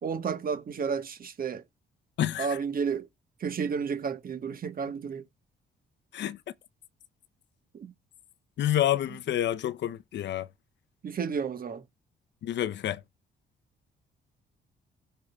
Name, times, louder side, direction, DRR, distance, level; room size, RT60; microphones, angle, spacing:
voice 1, 0.0-1.6 2.4-3.1 3.4-5.2 7.7-7.9 11.0-11.8, right 6 dB, 45° right, 1.2 m, -31 dB
voice 2, 2.2-2.5 6.1-6.4 8.6-10.5 12.4-13.0, left 12 dB, 65° left, 0.6 m, -28 dB
16.0 x 5.6 x 2.3 m
cardioid pair, 90°, 20 cm